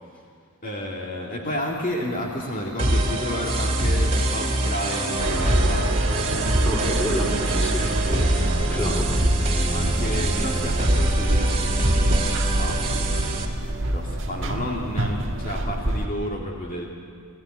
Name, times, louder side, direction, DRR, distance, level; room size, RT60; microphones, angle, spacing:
voice 1, 0.6-6.0 8.7-9.0 9.7-13.3 13.9-16.9, left 1 dB, 40° left, -1 dB, 2.2 m, -31 dB
sound 1, 1.6-8.6, equal, 25° left, 6.2 m, -44 dB
sound 2, 2.8-13.4, right 1 dB, 30° right, 2.2 m, -23 dB
sound 3, 5.2-16.1, right 1 dB, 60° right, 1.4 m, -27 dB
voice 2, 6.6-8.3 8.7-9.2 10.3-10.5, equal, 5° left, 1 dB, 3.1 m, -30 dB
19.5 x 15.0 x 9.8 m, 2.2 s
head